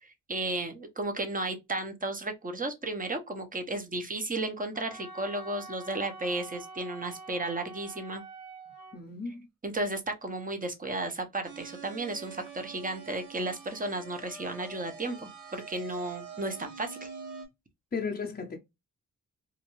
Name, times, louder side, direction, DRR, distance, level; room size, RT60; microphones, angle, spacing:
voice 1, 0.0-8.2 9.6-17.1, right 2 dB, 25° right, 0.7 m, -34 dB
Wind instrument woodwind instrument, 4.7-9.0, right 2 dB, 55° right, 1.1 m, -46 dB
voice 2, 8.9-9.5 17.9-18.6, left 5 dB, 30° left, 0.6 m, -35 dB
sound 1, 11.4-17.5, right 5 dB, 70° right, 1.3 m, -46 dB
2.5 x 2.3 x 3.0 m
cardioid pair, 75°, 32 cm